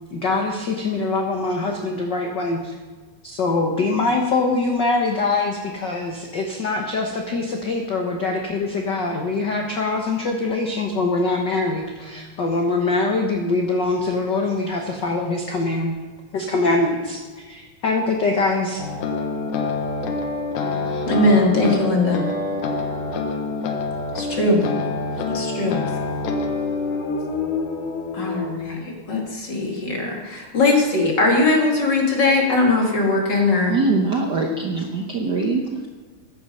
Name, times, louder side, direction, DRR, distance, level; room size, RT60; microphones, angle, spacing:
voice 1, 0.1-2.7 3.2-16.0 16.3-18.8, left 3 dB, 55° left, 2 dB, 1.2 m, -23 dB
sound 1, 18.8-28.6, left 3 dB, 75° left, 2.6 m, -26 dB
voice 2, 21.0-22.2 24.1-24.6 25.3-25.8 28.1-33.8, left 2 dB, 35° left, 0 dB, 2.8 m, -20 dB
voice 3, 33.3-35.9, right 3 dB, 85° right, 1 dB, 0.9 m, -23 dB
14.5 x 11.0 x 5.5 m, 1.4 s
omnidirectional pair, 3.6 m